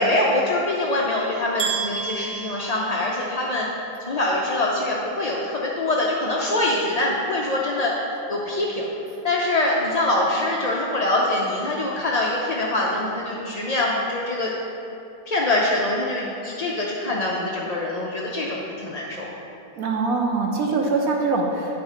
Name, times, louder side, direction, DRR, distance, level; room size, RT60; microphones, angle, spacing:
voice 1, 0.0-3.7 4.1-8.8 9.2-14.5 15.3-19.3, left 2 dB, 55° left, -3 dB, 0.4 m, -24 dB
sound 1, 1.6-3.6, right 6 dB, 50° right, 1.0 m, -30 dB
voice 2, 19.8-21.8, right 3 dB, 70° right, 0 dB, 1.2 m, -23 dB
11.0 x 4.2 x 5.0 m, 2.9 s
omnidirectional pair, 1.6 m